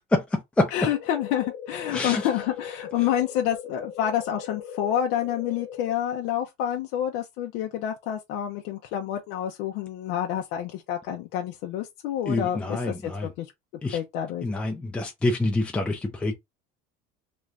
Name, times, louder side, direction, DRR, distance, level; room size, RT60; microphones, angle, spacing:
voice 1, 0.1-0.7 1.9-2.2 12.3-13.3 13.8-14.0 14.4-16.3, left 2 dB, 5° left, 0.5 m, -26 dB
voice 2, 0.7-13.5 13.9-14.5, left 10 dB, 70° left, 0.6 m, -28 dB
sound 1, 0.9-5.9, left 8 dB, 45° left, 0.9 m, -39 dB
3.0 x 2.5 x 3.3 m
cardioid pair, 150°, 19 cm